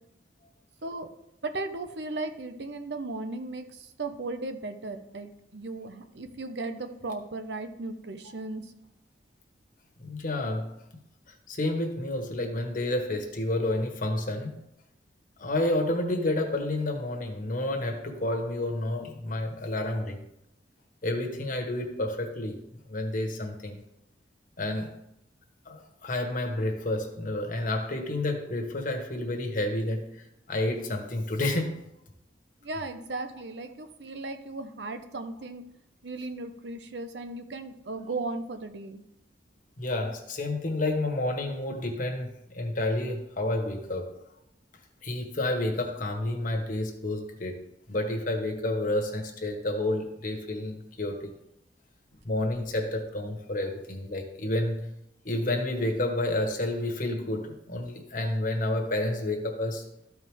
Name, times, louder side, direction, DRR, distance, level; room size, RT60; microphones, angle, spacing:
voice 1, 1.4-8.7 32.6-35.6 36.0-39.0 49.5-49.6, right 2 dB, 70° right, 8 dB, 0.8 m, -36 dB
voice 2, 10.0-10.7 11.3-14.5 15.4-20.2 21.0-22.6 22.9-23.8 24.6-24.9 25.6-31.8 39.8-44.1 45.0-47.6 47.9-51.3 52.2-54.9 55.2-59.9, left 1 dB, 50° left, 3 dB, 1.4 m, -30 dB
13.5 x 4.8 x 3.6 m, 0.79 s
head